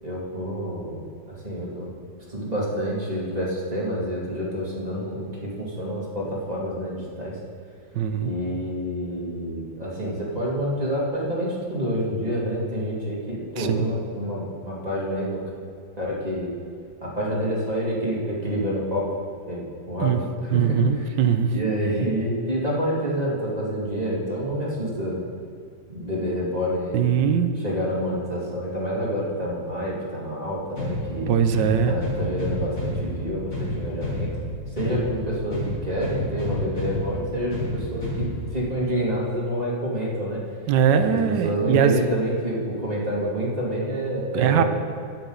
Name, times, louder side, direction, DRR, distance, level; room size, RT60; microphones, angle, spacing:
voice 1, 0.0-1.0 1.3-1.9 2.3-7.4 8.2-15.4 16.0-16.5 17.0-19.1 19.5-21.1 21.5-25.2 25.9-27.0 27.6-31.3 31.8-34.3 34.7-40.4 40.9-44.6, equal, 20° right, -5 dB, 2.3 m, -28 dB
voice 2, 7.9-8.3 13.6-13.9 20.0-20.2 20.5-21.5 26.9-27.6 31.3-31.9 40.7-42.1 44.3-44.6, right 8 dB, 70° right, 9 dB, 1.3 m, -21 dB
sound 1, 30.8-38.8, left 1 dB, 45° left, 2.9 m, -30 dB
13.0 x 9.3 x 3.9 m, 2.2 s
omnidirectional pair, 2.1 m